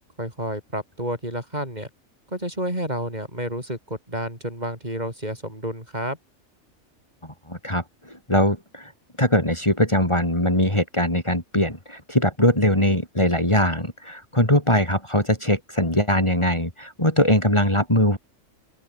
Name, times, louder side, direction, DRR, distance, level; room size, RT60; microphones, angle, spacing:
voice 1, 0.2-1.9 2.3-6.2, right 1 dB, 30° right, 8.1 m, -30 dB
voice 2, 7.2-8.9 9.2-18.2, left 1 dB, 20° left, 4.8 m, -21 dB
open air
omnidirectional pair, 1.4 m